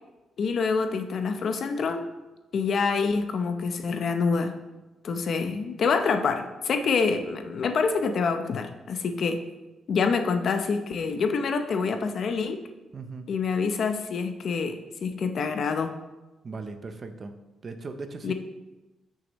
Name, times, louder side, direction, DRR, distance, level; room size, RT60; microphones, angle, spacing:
voice 1, 0.4-2.0 2.5-4.5 5.0-9.4 9.9-12.6 13.3-15.9 18.2-18.3, left 5 dB, 45° left, 7 dB, 0.6 m, -26 dB
voice 2, 12.9-13.3 16.4-17.4 17.6-18.3, right 4 dB, 30° right, 8 dB, 0.6 m, -38 dB
14.0 x 6.4 x 3.0 m, 1.1 s
cardioid pair, 175°, 0 cm